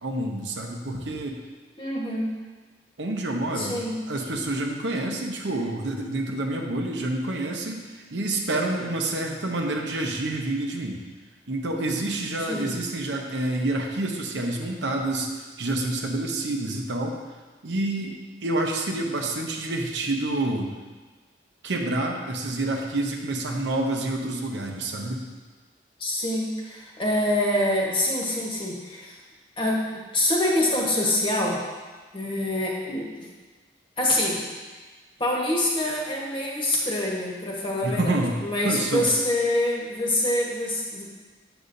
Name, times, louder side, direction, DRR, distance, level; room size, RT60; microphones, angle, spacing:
voice 1, 0.0-1.4 3.0-3.8 4.1-11.0 11.5-17.2 17.6-20.7 21.6-25.3 37.8-38.4 38.6-39.1, right 2 dB, 75° right, 1 dB, 0.8 m, -28 dB
voice 2, 1.8-2.3 3.5-4.0 12.4-12.8 26.0-29.2 29.6-31.6 32.1-33.3 34.0-34.4 35.2-41.1, left 1 dB, 30° left, -3 dB, 1.2 m, -25 dB
8.2 x 6.9 x 2.6 m, 1.3 s
head